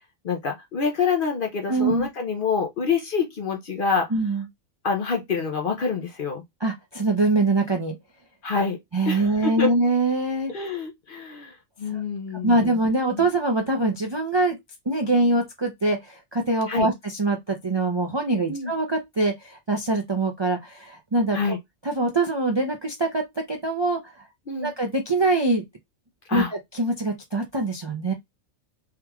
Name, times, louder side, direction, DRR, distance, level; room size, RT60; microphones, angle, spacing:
voice 1, 0.2-4.1 4.8-6.4 8.4-8.8 9.1-9.7 10.5-12.7 13.1-13.2 16.7-16.9 18.5-18.7 21.3-21.6 24.5-24.7 26.3-26.5, left 5 dB, 55° left, 0.6 m, -26 dB
voice 2, 1.7-2.1 4.1-4.4 6.6-8.0 8.9-10.5 11.9-12.0 12.4-14.6 14.9-21.4 21.8-24.0 24.6-25.6 26.3-26.4 26.7-28.1, right 2 dB, 45° right, 0.3 m, -23 dB
3.6 x 3.0 x 2.2 m
omnidirectional pair, 1.4 m